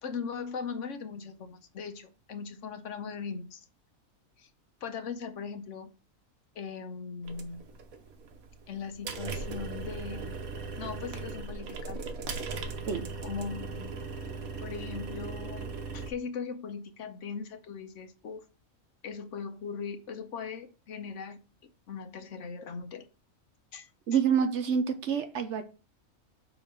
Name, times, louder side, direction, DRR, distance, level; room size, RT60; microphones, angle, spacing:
voice 1, 0.0-3.6 4.4-4.5 4.8-5.9 6.5-7.6 8.7-10.3 10.7-12.0 13.2-13.9 14.6-18.4 19.0-23.1 23.7-23.9, left 6 dB, 65° left, 1.1 m, -39 dB
sound 1, 7.2-16.1, right 4 dB, 85° right, 1.4 m, -38 dB
voice 2, 24.1-25.6, right 7 dB, 60° right, 1.0 m, -27 dB
5.9 x 4.0 x 5.3 m
omnidirectional pair, 1.4 m